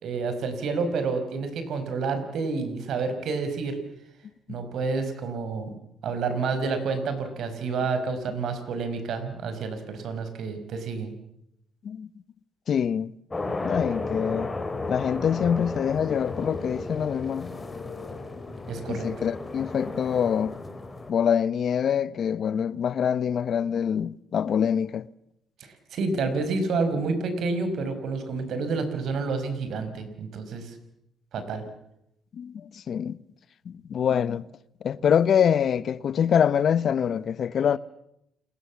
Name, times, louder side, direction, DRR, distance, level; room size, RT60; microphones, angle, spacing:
voice 1, 0.0-3.8 4.5-5.7 6.0-11.1 18.7-19.1 25.9-30.7 31.3-31.6, right 4 dB, 70° right, 5.1 m, -29 dB
voice 2, 12.7-13.1 13.6-14.5 14.9-17.6 18.9-20.6 21.1-25.1 32.3-33.2 33.7-34.4 34.8-37.8, left 8 dB, 60° left, 0.9 m, -25 dB
sound 1, 13.3-21.1, left 3 dB, 25° left, 3.4 m, -34 dB
29.5 x 20.5 x 7.3 m
cardioid pair, 90°, 0 cm